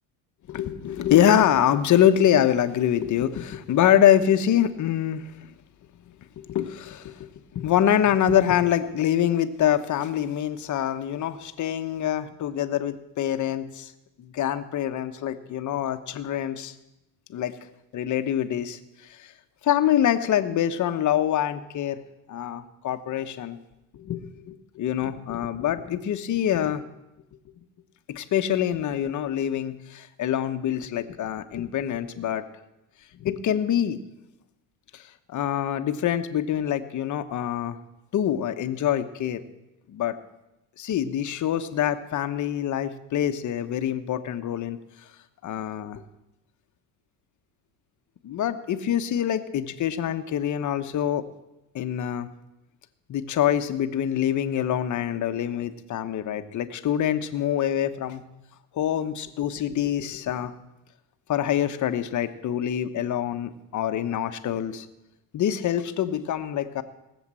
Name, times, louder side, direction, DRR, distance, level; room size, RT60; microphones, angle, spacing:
voice 1, 0.5-5.5 6.4-13.9 14.2-16.7 17.3-17.6 17.9-19.3 19.6-22.0 22.3-23.6 23.9-26.9 28.1-32.4 33.2-34.0 34.9-35.0 35.3-37.8 38.1-39.4 39.9-40.2 40.8-44.8 45.4-46.0 48.2-51.2 51.7-52.3 53.1-58.3 58.7-60.5 61.3-64.9 65.3-66.8, left 10 dB, 40° left, 10 dB, 1.1 m, -25 dB
18.0 x 7.3 x 7.5 m, 0.94 s
supercardioid pair, 115°, 47 cm